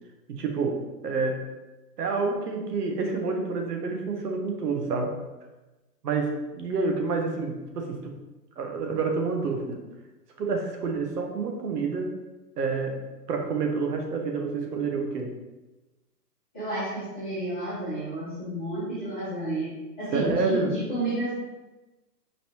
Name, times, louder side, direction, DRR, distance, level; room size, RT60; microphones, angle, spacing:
voice 1, 0.3-1.4 2.0-5.2 6.0-8.2 8.6-9.8 10.4-12.2 12.6-15.3 20.1-20.7, right 4 dB, 70° right, 3 dB, 1.0 m, -28 dB
voice 2, 16.5-19.7 20.0-21.3, right 1 dB, 5° left, -16 dB, 0.4 m, -31 dB
5.2 x 2.8 x 2.9 m, 1.1 s
hypercardioid pair, 145°, 48 cm